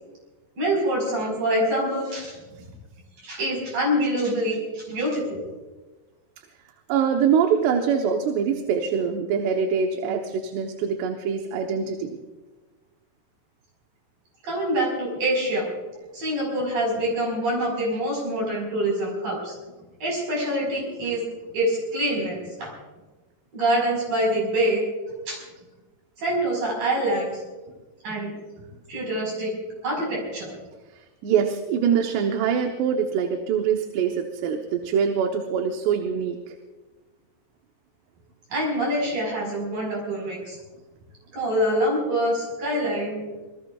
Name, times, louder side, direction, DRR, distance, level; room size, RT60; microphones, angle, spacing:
voice 1, 0.6-2.4 3.2-5.4 14.4-15.7 16.1-19.6 20.0-21.2 21.5-22.7 23.5-24.8 25.3-25.4 26.2-27.4 28.0-28.3 28.9-29.5 29.8-30.5 38.5-40.6 41.3-43.2, right 1 dB, 55° right, -2 dB, 6.4 m, -25 dB
voice 2, 6.9-12.2 31.2-36.5, right 7 dB, 85° right, 4 dB, 3.2 m, -24 dB
27.0 x 21.0 x 2.4 m, 1.2 s
omnidirectional pair, 4.8 m